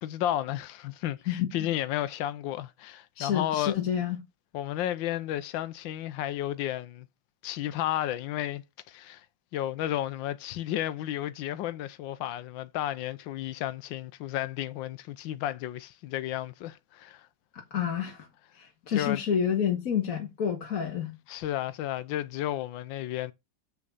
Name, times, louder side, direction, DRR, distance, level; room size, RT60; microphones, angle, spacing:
voice 1, 0.0-3.8 4.5-7.1 7.4-9.3 9.5-17.3 18.9-19.2 21.3-23.3, left 13 dB, 80° left, 1.4 m, -32 dB
voice 2, 1.3-1.7 3.2-4.2 17.5-18.3 18.5-21.2, left 8 dB, 50° left, 1.8 m, -29 dB
7.7 x 5.9 x 4.1 m
omnidirectional pair, 2.1 m